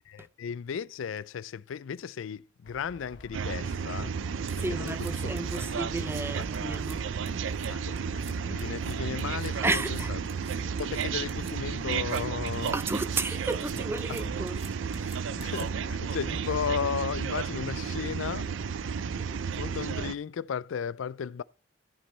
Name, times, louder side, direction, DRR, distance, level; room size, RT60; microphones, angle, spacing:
voice 1, 0.1-4.1 4.6-5.8 6.4-6.6 7.7-10.2 10.8-12.7 14.1-14.2 15.4-18.5 19.5-21.4, left 7 dB, 90° left, 0.4 m, -35 dB
sound 1, 2.6-19.5, left 1 dB, 65° left, 2.4 m, -52 dB
sound 2, 3.3-20.2, right 6 dB, 80° right, 0.4 m, -32 dB
sound 3, 4.5-5.6 6.0-6.2 6.5-7.0 7.3-7.7 8.0-8.3 8.6-11.5 11.9-13.2 13.5-15.9, right 6 dB, 30° right, 1.5 m, -49 dB
voice 2, 4.6-7.1 9.6-10.1 12.7-15.3, right 2 dB, 10° right, 0.4 m, -33 dB
14.0 x 5.3 x 4.3 m
head